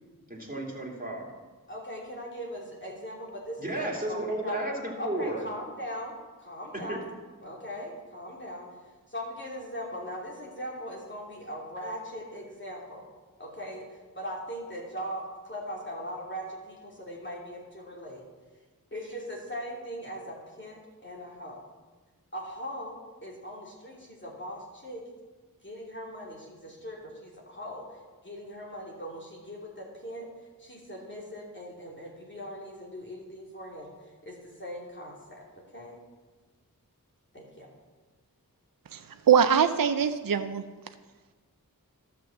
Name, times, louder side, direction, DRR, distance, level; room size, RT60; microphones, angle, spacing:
voice 1, 0.3-1.3 3.6-5.4 6.7-7.1, right 1 dB, 25° right, -3 dB, 2.7 m, -33 dB
voice 2, 1.7-4.6 5.0-6.1 6.4-7.1 7.4-8.7 9.1-13.1 13.4-13.9 14.1-18.2 18.9-21.6 22.3-25.0 25.6-30.3 30.6-33.9 34.2-35.4 35.7-36.0 37.3-37.7, equal, 30° left, -3 dB, 3.0 m, -40 dB
voice 3, 38.9-40.6, right 8 dB, 70° right, 9 dB, 0.5 m, -23 dB
12.5 x 6.0 x 7.2 m, 1.3 s
wide cardioid pair, 45°, 35 cm